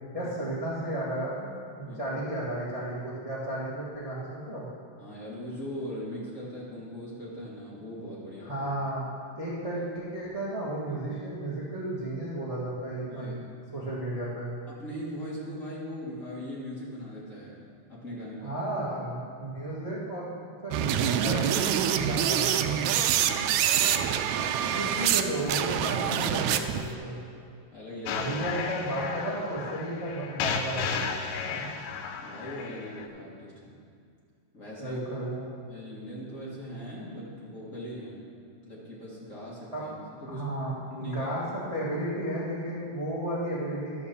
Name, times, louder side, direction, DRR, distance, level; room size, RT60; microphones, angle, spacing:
voice 1, 0.1-1.5 1.7-4.7 8.4-9.1 9.4-13.3 13.7-14.5 18.4-20.3 20.6-23.0 24.7-27.2 28.2-31.1 31.4-31.7 34.8-35.4 39.7-39.8 40.2-44.1, right 1 dB, 60° right, -8 dB, 0.3 m, -33 dB
voice 2, 5.0-8.7 13.1-13.3 14.7-17.6 17.9-18.6 23.2-23.6 24.7-25.0 27.7-28.4 31.5-31.6 32.2-33.8 34.5-35.0 35.7-38.2 38.6-40.5 40.9-41.3, equal, 30° left, -7 dB, 1.6 m, -40 dB
sound 1, 20.7-25.2 25.5-26.9, right 9 dB, 90° right, 1.6 m, -26 dB
sound 2, 28.1-33.1, left 6 dB, 85° left, 2.2 m, -34 dB
12.0 x 5.1 x 6.8 m, 2.3 s
omnidirectional pair, 3.8 m